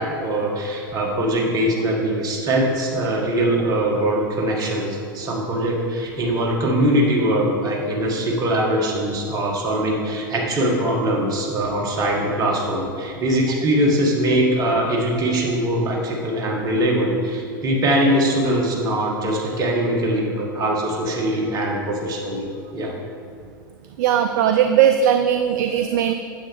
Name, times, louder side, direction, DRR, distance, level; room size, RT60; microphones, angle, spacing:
voice 1, 0.0-22.5 22.7-22.9, right 1 dB, 30° right, -2 dB, 1.6 m, -22 dB
voice 2, 24.0-26.1, right 9 dB, 50° right, 7 dB, 0.4 m, -18 dB
9.4 x 7.2 x 3.5 m, 2.2 s
figure-of-eight pair, 85°, 12 cm